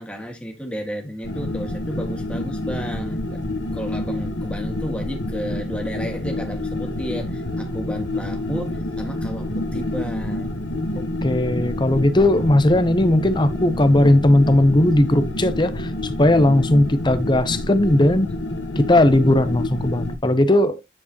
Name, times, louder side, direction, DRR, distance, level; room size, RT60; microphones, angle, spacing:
voice 1, 0.0-3.4 3.7-10.5, equal, 5° left, 2.0 m, -32 dB
sound 1, 1.2-20.2, left 1 dB, 80° left, 1.3 m, -28 dB
voice 2, 11.2-18.3 18.8-20.8, left 1 dB, 25° left, 0.7 m, -17 dB
9.8 x 4.7 x 3.0 m
head